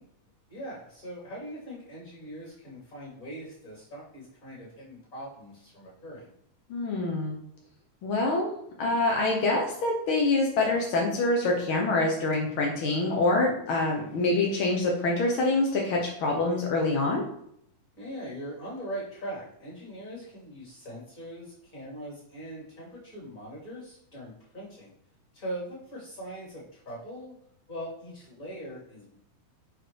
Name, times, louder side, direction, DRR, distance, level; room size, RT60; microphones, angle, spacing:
voice 1, 0.5-6.3 13.8-14.2 17.9-24.9 25.3-27.3 27.7-29.2, right 1 dB, 25° left, -5 dB, 2.9 m, -41 dB
voice 2, 6.7-7.4 8.0-17.2, left 2 dB, 70° left, -1 dB, 1.2 m, -26 dB
6.4 x 4.7 x 4.7 m, 0.72 s
omnidirectional pair, 4.0 m